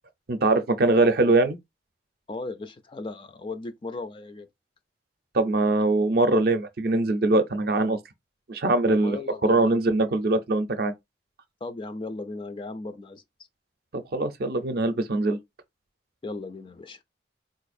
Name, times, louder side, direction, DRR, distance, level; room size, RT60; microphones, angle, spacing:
voice 1, 0.3-1.6 5.3-8.0 8.5-10.9 13.9-15.4, right 2 dB, 50° right, 0.5 m, -22 dB
voice 2, 2.3-4.5 8.9-9.8 11.6-13.2 16.2-17.0, left 2 dB, 25° left, 0.3 m, -36 dB
4.0 x 2.4 x 2.6 m
head